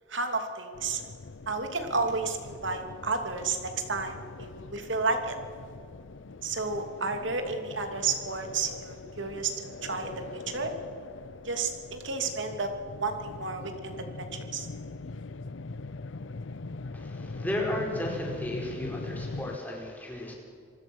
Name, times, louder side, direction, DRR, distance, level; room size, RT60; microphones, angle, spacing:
voice 1, 0.1-1.0 1.5-5.4 6.4-10.7 11.4-12.7 13.0-14.7, right 4 dB, 85° right, 6 dB, 2.9 m, -32 dB
sound 1, 0.7-19.6, left 3 dB, 85° left, 0.7 m, -42 dB
voice 2, 16.9-20.3, left 1 dB, 10° left, -1 dB, 4.9 m, -34 dB
26.5 x 20.0 x 6.4 m, 2.1 s
head